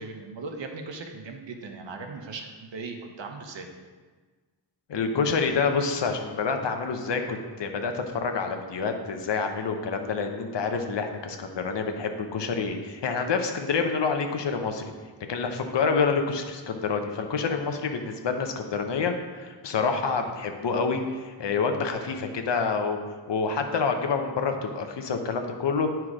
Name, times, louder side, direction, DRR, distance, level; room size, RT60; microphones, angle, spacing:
voice 1, 0.0-3.7, right 3 dB, 80° right, 3 dB, 1.1 m, -38 dB
voice 2, 4.9-14.8 15.3-23.0 23.3-25.9, left 5 dB, 75° left, 5 dB, 1.0 m, -27 dB
9.7 x 4.6 x 5.0 m, 1.4 s
wide cardioid pair, 125°, 43 cm